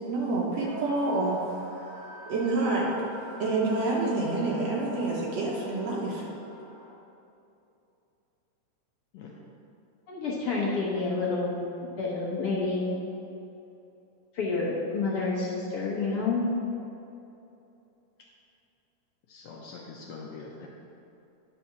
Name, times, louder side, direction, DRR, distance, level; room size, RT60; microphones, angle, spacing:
voice 1, 0.1-1.4 1.8-1.9 2.3-2.9 3.4-6.2, right 2 dB, 65° right, -4 dB, 2.0 m, -27 dB
sound 1, 0.6-6.9, right 2 dB, 35° right, 1.2 m, -46 dB
voice 2, 10.1-12.9 14.3-16.5, left 3 dB, 55° left, -6 dB, 1.8 m, -29 dB
voice 3, 19.3-20.7, left 4 dB, 70° left, -2 dB, 1.8 m, -44 dB
9.8 x 4.3 x 5.8 m, 2.8 s
omnidirectional pair, 3.6 m